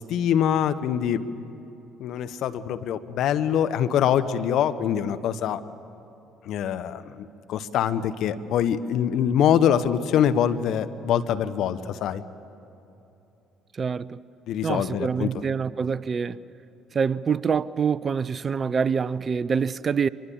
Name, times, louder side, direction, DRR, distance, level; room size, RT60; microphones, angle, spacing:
voice 1, 0.1-1.3 2.0-5.6 6.5-12.2 14.5-15.3, left 9 dB, 60° left, 1.0 m, -24 dB
voice 2, 13.7-14.2 14.6-16.4 16.9-20.1, right 6 dB, 40° right, 0.6 m, -26 dB
25.0 x 22.5 x 7.1 m
hypercardioid pair, 55°, 0 cm